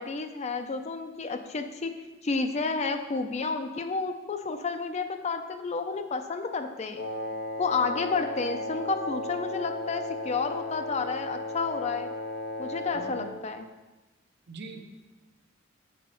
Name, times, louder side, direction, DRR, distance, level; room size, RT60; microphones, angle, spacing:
voice 1, 0.0-2.0 2.2-7.0 7.6-12.1 12.6-13.7, left 4 dB, 35° left, 7 dB, 0.4 m, -31 dB
Wind instrument woodwind instrument, 7.0-13.4, left 1 dB, 55° left, 0.9 m, -35 dB
voice 2, 14.5-14.8, right 3 dB, 60° right, 5 dB, 0.7 m, -42 dB
6.8 x 4.2 x 5.0 m, 1.1 s
head